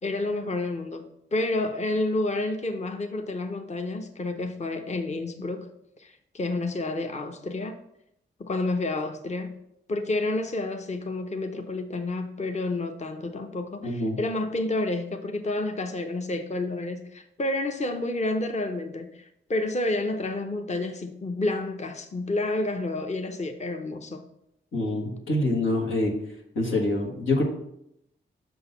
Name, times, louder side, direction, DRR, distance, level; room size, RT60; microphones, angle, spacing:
voice 1, 0.0-5.7 6.0-7.8 8.4-9.6 9.9-24.3, left 2 dB, 35° left, 0.7 m, -30 dB
voice 2, 13.8-14.2 24.7-26.1 26.5-27.4, left 2 dB, 90° left, 1.4 m, -25 dB
6.0 x 3.9 x 5.7 m
supercardioid pair, 40°, 20 cm